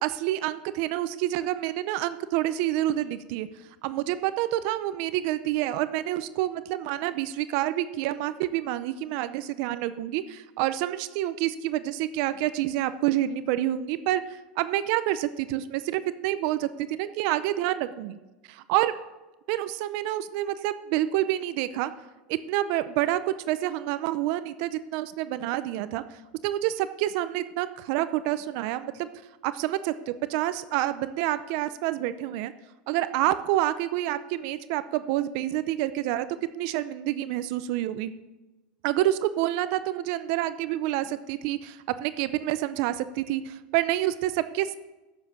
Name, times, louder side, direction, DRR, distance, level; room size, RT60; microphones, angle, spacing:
voice 1, 0.0-3.5 3.8-18.2 18.5-18.9 19.5-21.9 22.3-26.0 26.4-29.1 29.4-32.5 32.9-36.3 36.5-38.1 38.8-44.7, right 14 dB, 55° right, 13 dB, 0.6 m, -28 dB
11.5 x 7.1 x 6.6 m, 1.1 s
supercardioid pair, 155°, 5 cm